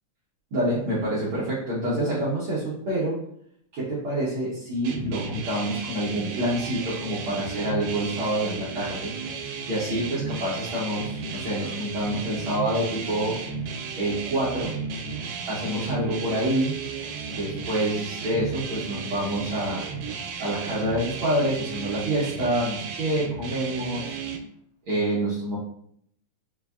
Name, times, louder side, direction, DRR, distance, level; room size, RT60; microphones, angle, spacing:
voice 1, 0.5-3.2 3.7-9.1 9.7-13.4 14.0-14.7 15.5-16.8 17.3-19.9 20.4-24.2 24.8-25.6, right 1 dB, 65° right, -9 dB, 1.3 m, -27 dB
sound 1, 4.8-24.4, right 5 dB, 90° right, 2.0 m, -34 dB
5.2 x 2.6 x 2.3 m, 0.67 s
omnidirectional pair, 3.4 m